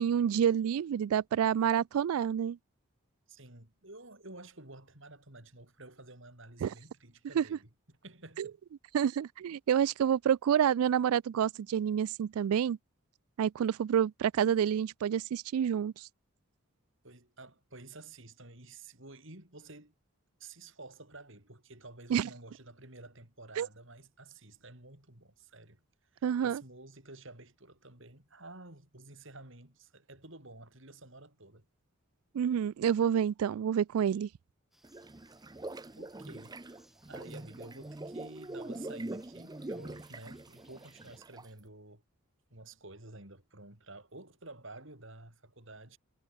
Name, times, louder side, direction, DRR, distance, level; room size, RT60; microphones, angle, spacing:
voice 1, 0.0-2.6 6.6-6.7 7.4-7.6 8.4-8.5 8.9-12.8 13.4-16.1 22.1-22.3 23.6-23.7 26.2-26.6 32.3-34.3, right 8 dB, 80° right, 0.3 m, -28 dB
voice 2, 3.3-8.6 17.0-19.9 20.4-25.8 26.1-31.6 36.0-36.8 37.1-42.0 42.5-46.0, right 2 dB, 60° right, 4.6 m, -51 dB
sound 1, 34.7-41.2, equal, ahead, 4.4 m, -67 dB
sound 2, 34.8-41.6, right 2 dB, 20° right, 0.6 m, -43 dB
head